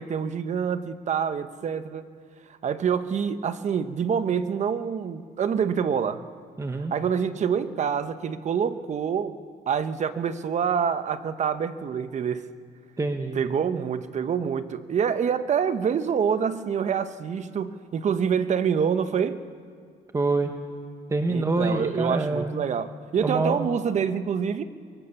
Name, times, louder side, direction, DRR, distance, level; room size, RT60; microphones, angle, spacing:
voice 1, 0.0-2.0 2.6-6.2 6.9-9.3 9.7-12.5 13.3-19.4 21.3-24.6, right 7 dB, 45° right, 11 dB, 1.2 m, -26 dB
voice 2, 6.6-6.9 13.0-13.4 20.1-20.5 21.1-22.6 23.2-23.6, right 3 dB, 20° right, 5 dB, 1.5 m, -26 dB
27.0 x 23.0 x 7.2 m, 2.1 s
cardioid pair, 110°, 17 cm